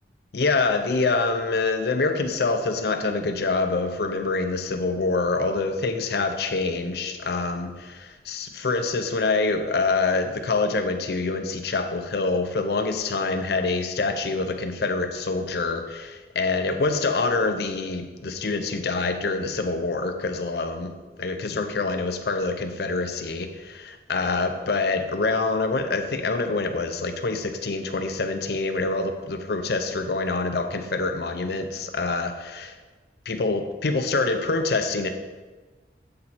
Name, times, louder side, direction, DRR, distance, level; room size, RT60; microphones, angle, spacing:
voice 1, 0.3-20.9 21.2-32.7 33.3-35.1, left 3 dB, 60° left, 7 dB, 0.5 m, -26 dB
7.5 x 4.3 x 4.1 m, 1.3 s
head